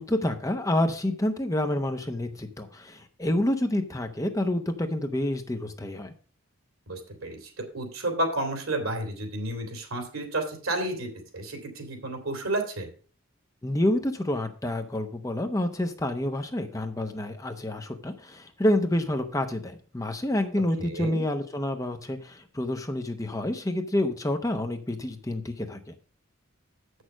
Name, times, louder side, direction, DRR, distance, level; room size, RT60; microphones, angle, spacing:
voice 1, 0.0-6.1 13.6-25.9, left 1 dB, 15° left, 7 dB, 0.8 m, -28 dB
voice 2, 6.9-12.9 20.8-21.2, right 1 dB, 85° right, 4 dB, 2.8 m, -31 dB
7.8 x 6.4 x 6.0 m, 0.41 s
head